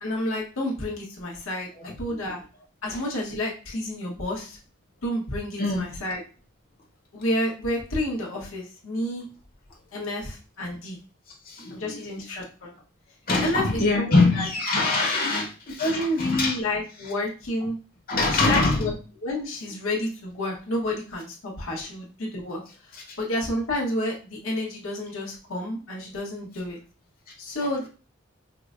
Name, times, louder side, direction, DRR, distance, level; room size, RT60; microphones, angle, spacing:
voice 1, 0.0-2.4 2.8-4.6 5.0-6.2 7.1-9.3 9.9-11.0 11.7-12.8 13.4-14.5 15.8-17.8 18.3-18.9 19.2-22.6 22.9-26.8 27.4-27.9, left 1 dB, 90° left, -2 dB, 1.0 m, -30 dB
voice 2, 1.7-2.2 2.9-3.0 5.6-5.9 11.5-12.0 13.3-16.6 18.1-18.9 22.9-23.0, left 3 dB, 45° left, 0 dB, 0.8 m, -24 dB
4.8 x 2.1 x 2.4 m, 0.35 s
head